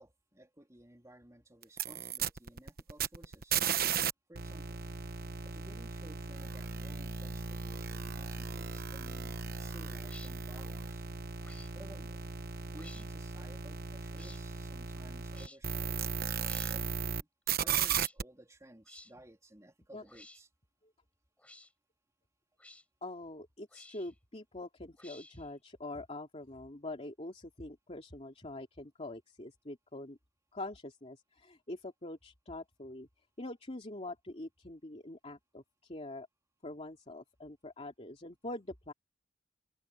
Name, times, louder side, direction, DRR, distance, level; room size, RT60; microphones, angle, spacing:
voice 1, 0.0-3.6 4.3-4.8 5.4-11.0 11.7-12.3 12.7-20.5, right 1 dB, 15° right, 3.5 m, -56 dB
sound 1, 1.6-4.1 4.4-17.2 17.5-18.2, right 7 dB, 55° right, 1.1 m, -36 dB
sound 2, 10.0-10.3 11.4-11.7 12.7-13.1 14.2-14.4 15.3-15.6 16.4-16.8 17.8-18.1 18.9-19.1 20.1-20.4 21.4-21.7 22.6-22.8 23.7-24.1 25.0-25.5, left 1 dB, 5° left, 7.3 m, -53 dB
voice 2, 23.0-30.2 30.5-33.1 33.4-36.3 36.6-38.9, left 2 dB, 35° left, 2.6 m, -44 dB
open air
head